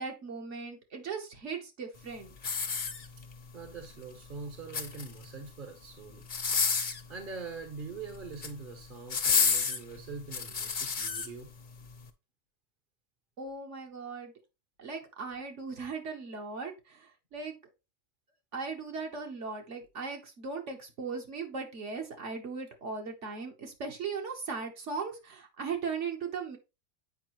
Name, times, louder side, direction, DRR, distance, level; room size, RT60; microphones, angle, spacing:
voice 1, 0.0-2.4 13.4-14.3 14.8-17.6 18.5-26.6, right 5 dB, 65° right, 2 dB, 1.5 m, -38 dB
sound 1, 2.4-3.4 4.5-5.3 6.2-7.1 8.1-8.6 9.1-11.3 11.9-12.0, left 5 dB, 45° left, 0.9 m, -30 dB
voice 2, 3.5-6.3 6.7-6.8 7.1-11.5, right 4 dB, 45° right, 5 dB, 1.0 m, -43 dB
8.2 x 4.8 x 3.0 m, 0.27 s
omnidirectional pair, 1.3 m